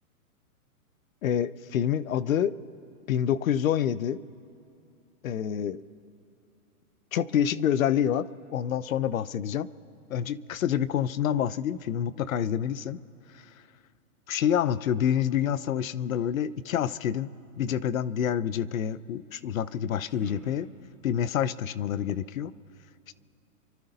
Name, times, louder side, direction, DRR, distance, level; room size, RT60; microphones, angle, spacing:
voice 1, 1.2-2.5 3.1-4.2 5.2-5.8 7.1-8.3 8.5-9.7 10.1-13.0 14.3-17.3 17.6-20.7 21.0-22.5, left 9 dB, 65° left, 18 dB, 0.7 m, -27 dB
sound 1, 19.6-21.2, right 1 dB, ahead, 1.6 m, -49 dB
29.0 x 12.5 x 4.0 m, 2.6 s
hypercardioid pair, 150°, 43 cm